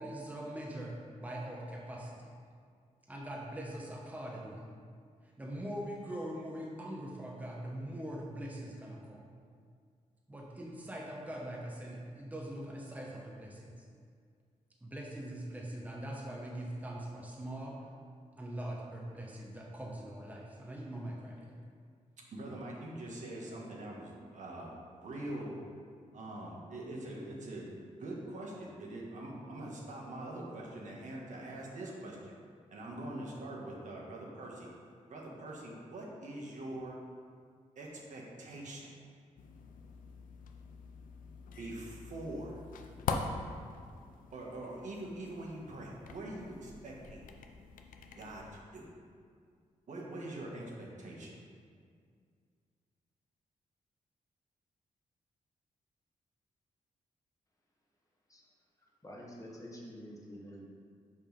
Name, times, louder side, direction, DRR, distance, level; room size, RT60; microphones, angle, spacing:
voice 1, 0.0-2.3 3.1-4.6 5.4-9.2 10.3-13.7 14.8-17.8 18.4-21.5, right 1 dB, 10° right, -3 dB, 1.0 m, -42 dB
voice 2, 22.3-25.6 26.1-32.4 32.7-34.7 35.1-37.0 37.7-38.9 41.6-42.6 44.3-47.2 48.1-48.9 49.9-51.3, right 1 dB, 65° right, -2 dB, 1.4 m, -43 dB
sound 1, 39.4-48.6, left 4 dB, 85° left, 0.5 m, -44 dB
voice 3, 59.0-60.6, equal, 25° left, -3 dB, 1.4 m, -48 dB
5.5 x 4.8 x 5.3 m, 2.1 s
cardioid pair, 80°, 14 cm